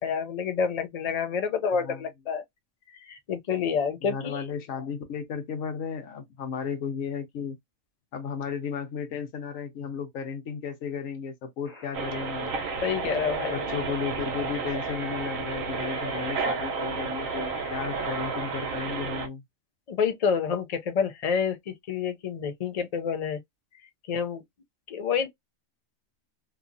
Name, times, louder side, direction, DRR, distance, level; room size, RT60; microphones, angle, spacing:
voice 1, 0.0-2.4 3.1-4.4 12.8-13.7 19.9-23.4 24.1-24.4 24.9-25.3, left 6 dB, 60° left, 0.4 m, -28 dB
voice 2, 4.0-7.6 8.1-12.5 13.5-19.4, left 6 dB, 85° left, 1.2 m, -34 dB
sound 1, 11.6-18.8, left 1 dB, 25° left, 1.0 m, -48 dB
sound 2, 11.9-19.3, right 4 dB, 80° right, 1.1 m, -32 dB
2.9 x 2.4 x 2.5 m
omnidirectional pair, 1.4 m